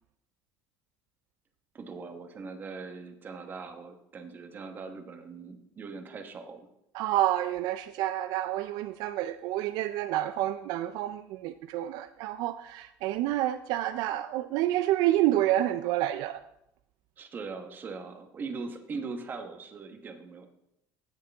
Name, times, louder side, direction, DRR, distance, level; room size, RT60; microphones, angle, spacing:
voice 1, 1.7-6.7 17.2-20.5, right 4 dB, 25° right, 1.1 m, -40 dB
voice 2, 6.9-16.4, right 14 dB, 65° right, 0.4 m, -28 dB
16.5 x 6.5 x 3.4 m
cardioid pair, 160°, 8 cm